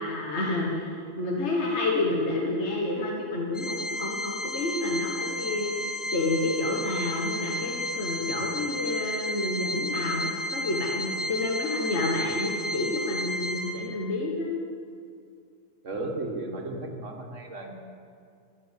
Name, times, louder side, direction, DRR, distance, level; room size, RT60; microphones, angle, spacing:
voice 1, 0.0-5.8 6.1-14.6, left 2 dB, 65° left, -2 dB, 1.7 m, -29 dB
Organ, 3.5-14.2, left 1 dB, 20° left, 0.6 m, -33 dB
voice 2, 8.2-8.5 15.8-17.7, right 2 dB, 75° right, 2 dB, 1.9 m, -35 dB
14.5 x 6.3 x 9.8 m, 2.4 s
omnidirectional pair, 1.3 m